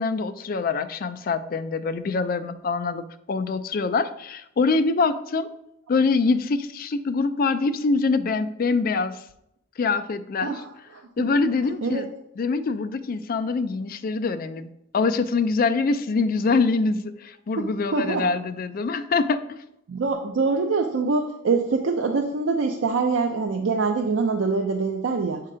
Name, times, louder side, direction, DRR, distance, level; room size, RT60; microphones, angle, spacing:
voice 1, 0.0-5.5 5.9-9.2 9.8-10.6 11.2-12.1 12.4-14.7 14.9-19.6, left 4 dB, 50° left, 11 dB, 0.4 m, -24 dB
voice 2, 10.4-11.0 11.8-12.0 17.6-17.7 17.9-18.3 19.9-25.4, right 4 dB, 90° right, 2 dB, 0.5 m, -24 dB
7.5 x 2.8 x 4.9 m, 0.79 s
head